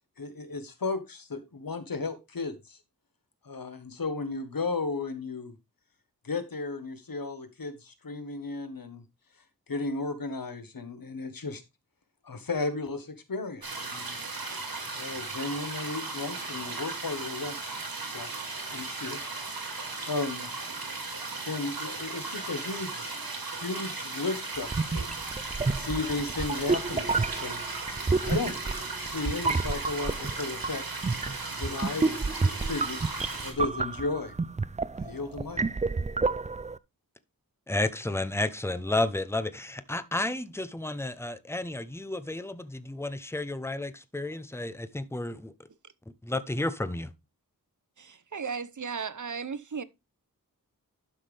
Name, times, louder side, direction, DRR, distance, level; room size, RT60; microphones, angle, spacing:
voice 1, 0.2-2.8 3.4-5.5 6.2-9.0 9.7-11.6 12.2-14.1 14.9-18.3 18.7-19.2 20.0-20.5 21.4-23.1 23.4-25.1 25.7-27.6 28.2-28.6 29.0-30.8 31.5-33.0 33.4-34.3 35.0-35.6, left 3 dB, 75° left, 1.5 m, -34 dB
sound 1, 13.6-33.5, right 3 dB, 90° right, 2.6 m, -36 dB
sound 2, 24.6-36.8, right 4 dB, 20° right, 0.4 m, -30 dB
voice 2, 37.7-45.5 46.2-47.1, left 2 dB, 5° left, 0.8 m, -32 dB
voice 3, 48.0-49.8, right 6 dB, 55° right, 0.8 m, -35 dB
11.5 x 5.9 x 3.4 m
wide cardioid pair, 80°, 35 cm